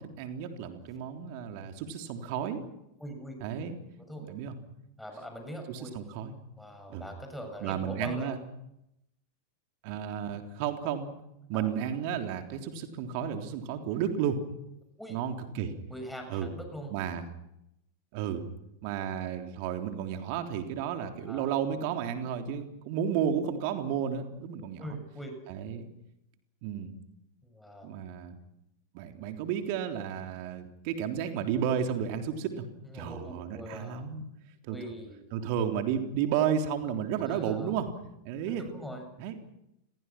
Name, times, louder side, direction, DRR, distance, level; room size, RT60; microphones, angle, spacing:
voice 1, 0.0-2.6 3.4-3.8 4.3-4.6 5.7-6.3 6.9-7.1 7.6-8.4 9.8-11.1 11.5-14.4 15.1-15.8 16.3-16.5 16.9-17.3 18.1-18.4 18.8-25.0 25.5-25.9 26.6-26.9 27.8-28.4 28.9-32.7 32.9-34.3 34.6-34.8 35.3-37.9 38.2-38.6 39.2-39.4, right 8 dB, 45° right, 5 dB, 3.5 m, -32 dB
voice 2, 3.0-3.4 4.0-4.3 5.0-5.9 6.6-8.4 11.5-11.8 15.0-15.2 15.9-16.9 21.3-21.5 24.8-25.4 27.4-27.9 31.7-31.9 32.8-34.1 34.7-35.2 37.2-37.8 38.5-39.0, equal, 5° left, 4 dB, 7.2 m, -42 dB
29.0 x 22.5 x 6.0 m, 0.83 s
figure-of-eight pair, 90°, 0 cm